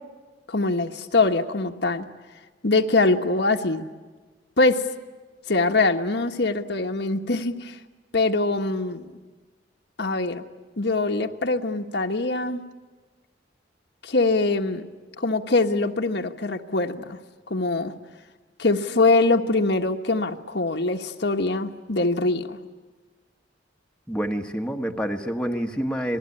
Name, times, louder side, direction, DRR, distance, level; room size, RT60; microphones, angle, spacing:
voice 1, 0.5-2.1 2.6-3.8 4.6-4.8 5.5-7.8 8.1-9.1 10.0-10.4 10.8-12.6 14.0-14.9 15.2-17.2 17.5-17.9 18.6-22.6, left 3 dB, 65° left, 5 dB, 1.4 m, -23 dB
voice 2, 24.1-26.2, equal, 5° left, 3 dB, 1.3 m, -27 dB
28.0 x 20.5 x 9.8 m, 1.3 s
head